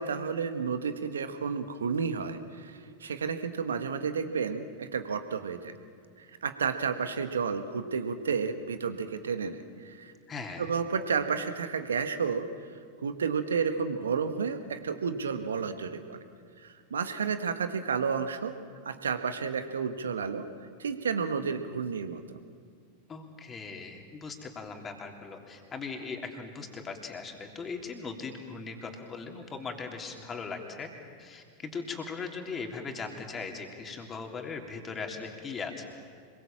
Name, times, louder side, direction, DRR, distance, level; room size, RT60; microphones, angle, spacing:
voice 1, 0.0-5.8 6.2-10.1 10.6-12.7 13.0-16.2 16.6-18.5 18.8-20.5 20.8-22.4, right 6 dB, 75° right, 9 dB, 1.5 m, -31 dB
voice 2, 10.3-10.7 23.1-30.9 31.2-35.8, left 4 dB, 25° left, 3 dB, 3.4 m, -39 dB
26.0 x 22.5 x 7.5 m, 2.1 s
figure-of-eight pair, 90°, 0 cm